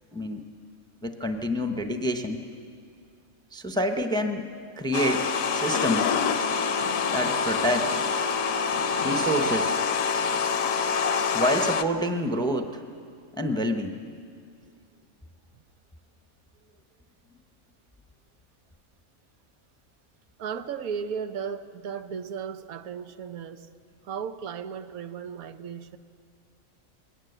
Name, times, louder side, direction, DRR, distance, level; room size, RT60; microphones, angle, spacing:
voice 1, 1.0-2.4 3.5-4.5 4.8-5.2 5.5-6.1 7.1-8.1 9.0-9.8 11.3-12.8 13.3-14.0, equal, 5° left, 6 dB, 0.7 m, -27 dB
sound 1, 4.9-11.8, left 5 dB, 75° left, 1.1 m, -26 dB
voice 2, 20.4-23.7 24.0-26.0, right 7 dB, 85° right, 10 dB, 1.3 m, -35 dB
20.5 x 18.0 x 8.0 m, 2.3 s
omnidirectional pair, 1.5 m